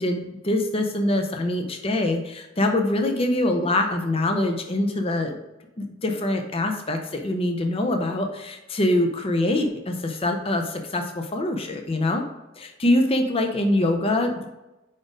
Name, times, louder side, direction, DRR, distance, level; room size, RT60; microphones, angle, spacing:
voice 1, 0.0-5.4 5.8-12.2 12.6-14.5, left 1 dB, 25° left, 4 dB, 0.5 m, -24 dB
4.9 x 4.3 x 4.9 m, 1.0 s
head